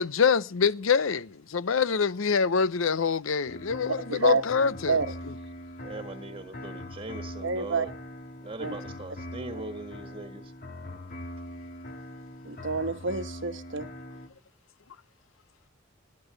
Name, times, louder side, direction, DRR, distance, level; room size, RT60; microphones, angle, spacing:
voice 1, 0.0-5.0, left 6 dB, 75° left, 0.6 m, -25 dB
sound 1, 3.5-14.3, left 1 dB, 50° left, 2.1 m, -42 dB
voice 2, 4.1-4.4 4.9-5.1 7.4-7.9 8.6-8.7 12.4-13.9, right 5 dB, 65° right, 1.2 m, -28 dB
voice 3, 5.8-7.9 8.4-10.5, right 2 dB, 25° right, 1.7 m, -40 dB
20.0 x 11.0 x 3.9 m
head